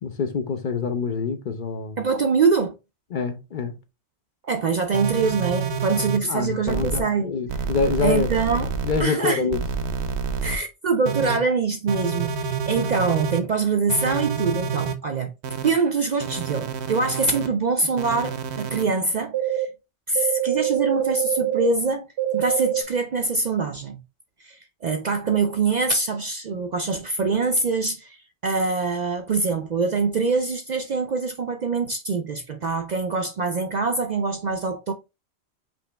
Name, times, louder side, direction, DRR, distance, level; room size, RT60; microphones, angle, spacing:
voice 1, 0.0-2.0 3.1-3.8 6.2-8.3 8.8-9.6, left 5 dB, 55° left, 0.7 m, -26 dB
voice 2, 2.0-2.7 4.4-7.3 8.0-8.7 9.0-9.5 10.4-15.3 15.6-19.7 20.1-22.1 22.3-24.0 24.4-28.2 28.4-34.9, right 4 dB, 55° right, 0.5 m, -24 dB
sound 1, 4.9-6.2 6.7-7.0 7.5-9.0 9.5-10.6 11.1-11.4 11.9-13.4 13.9-14.9 15.4-15.7 16.2-17.5 18.0-18.8 19.3-19.7 20.2-21.7 22.2-22.8, right 7 dB, 75° right, 0.9 m, -27 dB
5.2 x 2.9 x 3.3 m
omnidirectional pair, 1.1 m